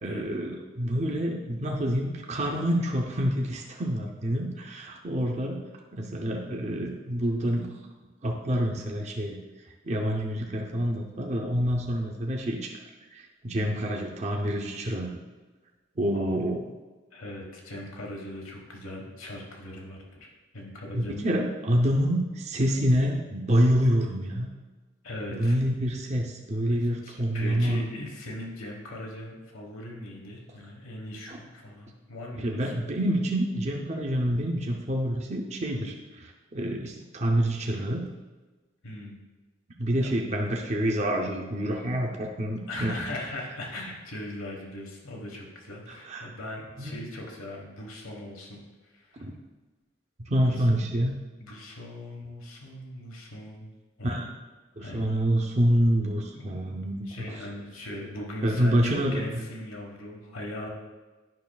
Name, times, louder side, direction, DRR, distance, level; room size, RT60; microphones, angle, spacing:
voice 1, 0.0-5.6 5.9-7.7 8.2-9.4 9.8-12.7 13.1-15.2 16.0-16.7 20.9-24.5 25.3-27.8 32.4-36.0 36.2-38.1 39.8-43.0 46.0-46.3 46.8-47.0 49.2-49.3 50.2-51.1 54.0-54.3 54.8-57.1 58.4-59.2, equal, 35° right, 1 dB, 0.6 m, -27 dB
voice 2, 17.1-21.3 22.7-22.8 25.0-25.6 26.7-32.7 38.8-39.2 39.9-40.1 42.7-48.6 48.9-49.2 50.4-51.0 51.4-53.7 54.0-54.3 54.8-55.1 56.3-56.7 57.0-60.7, left 1 dB, 90° left, 0 dB, 1.3 m, -39 dB
9.4 x 5.7 x 2.3 m, 1.3 s
head